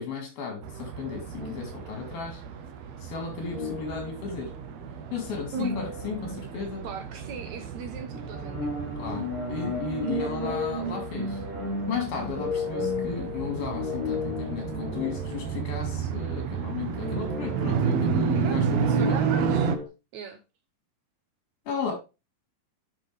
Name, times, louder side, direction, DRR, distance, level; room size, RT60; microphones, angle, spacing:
voice 1, 0.0-2.4 3.0-4.5 5.1-6.9 9.0-11.4 11.9-19.2 21.7-21.9, left 6 dB, 85° left, 3 dB, 5.1 m, -34 dB
sound 1, 0.6-19.8, right 6 dB, 85° right, 1.4 m, -31 dB
sound 2, 1.3-2.3 3.4-4.7 5.4-7.2 7.5-7.6 8.1-16.6 16.9-18.5 19.2-19.9, left 3 dB, 15° left, 2.3 m, -35 dB
voice 2, 6.5-8.7 10.0-10.3 18.4-18.6 19.0-19.7 20.1-20.4, right 6 dB, 70° right, 7 dB, 1.9 m, -38 dB
9.8 x 6.0 x 3.4 m, 0.27 s
omnidirectional pair, 4.1 m